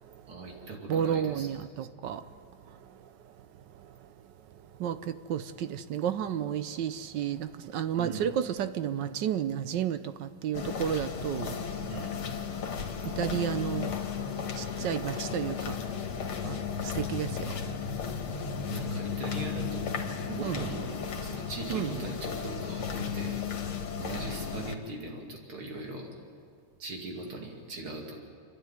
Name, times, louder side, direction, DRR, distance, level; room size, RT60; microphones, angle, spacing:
voice 1, 0.3-1.5 7.9-8.3 11.9-12.2 18.6-20.0 20.3-23.4 24.0-26.1 26.8-28.2, right 2 dB, 90° right, 3.4 m, -40 dB
voice 2, 0.9-2.2 3.7-3.9 4.8-11.6 13.0-14.0 14.6-15.8 16.4-17.5 20.4-20.6 21.7-21.9, right 9 dB, 70° right, 1.2 m, -32 dB
sound 1, 10.5-24.7, left 6 dB, 90° left, 2.3 m, -34 dB
29.0 x 11.5 x 9.2 m
omnidirectional pair, 2.3 m